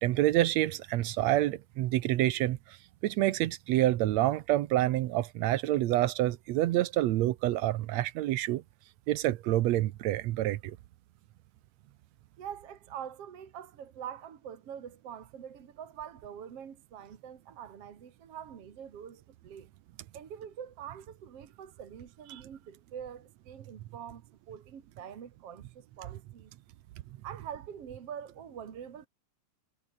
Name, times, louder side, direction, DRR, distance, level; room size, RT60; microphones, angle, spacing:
voice 1, 0.0-2.8 3.0-8.6 9.1-10.8 22.3-22.4, right 15 dB, 75° right, 2.0 m, -27 dB
voice 2, 12.4-19.7 20.1-24.2 24.5-26.5 27.2-29.1, right 8 dB, 55° right, 3.1 m, -44 dB
omnidirectional pair, 3.3 m